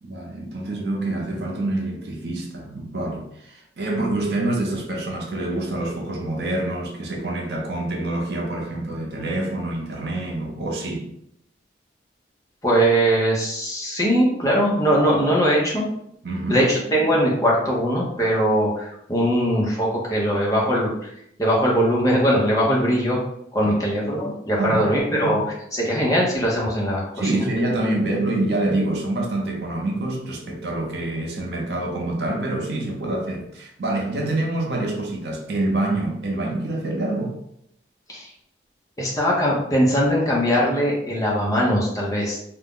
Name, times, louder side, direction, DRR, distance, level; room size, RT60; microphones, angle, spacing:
voice 1, 0.0-11.1 16.2-16.6 23.6-23.7 24.6-25.3 27.2-37.3, right 2 dB, 65° right, 0 dB, 0.6 m, -26 dB
voice 2, 12.6-15.8 16.5-20.9 21.4-23.2 23.5-25.4 25.7-27.1 27.3-27.4 27.8-27.9 38.1-38.3 39.0-42.4, equal, 20° left, -4 dB, 0.7 m, -21 dB
2.4 x 2.1 x 3.5 m, 0.74 s
head